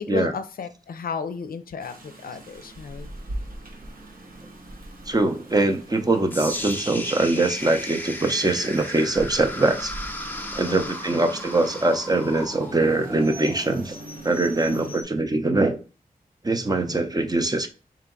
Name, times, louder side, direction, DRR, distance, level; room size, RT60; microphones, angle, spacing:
voice 1, 0.0-3.1 10.6-11.3 14.7-14.9 16.8-17.1, left 5 dB, 75° left, 0.5 m, -34 dB
Rain, 1.8-15.0, right 1 dB, 75° right, 0.9 m, -41 dB
voice 2, 5.1-9.9 10.5-14.0 14.2-15.8 16.4-17.7, right 2 dB, 25° right, 0.6 m, -23 dB
sound 1, 6.3-14.4, left 1 dB, 15° left, 0.7 m, -36 dB
3.3 x 2.9 x 3.8 m
cardioid pair, 50°, 15 cm